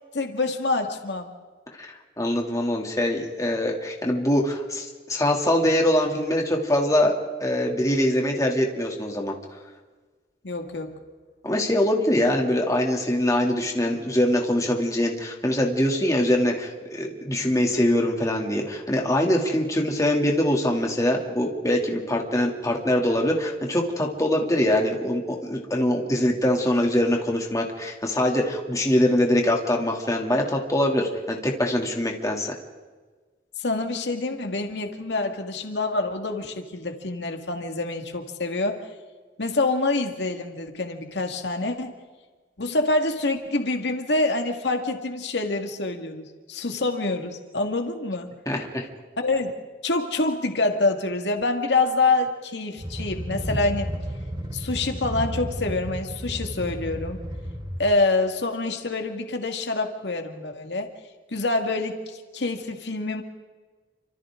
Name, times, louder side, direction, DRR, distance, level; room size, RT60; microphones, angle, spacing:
voice 1, 0.1-1.3 10.4-10.9 33.6-38.9 39.4-41.9 42.6-48.3 49.2-49.5 49.8-53.9 54.5-57.2 57.8-60.9 61.3-63.2, left 2 dB, 85° left, 4 dB, 2.0 m, -26 dB
voice 2, 1.8-7.1 7.4-9.3 11.4-32.6 48.5-48.8, left 1 dB, 20° left, 0 dB, 2.8 m, -23 dB
sound 1, 52.8-57.8, equal, 25° right, 5.1 m, -32 dB
29.5 x 26.0 x 3.8 m, 1.4 s
head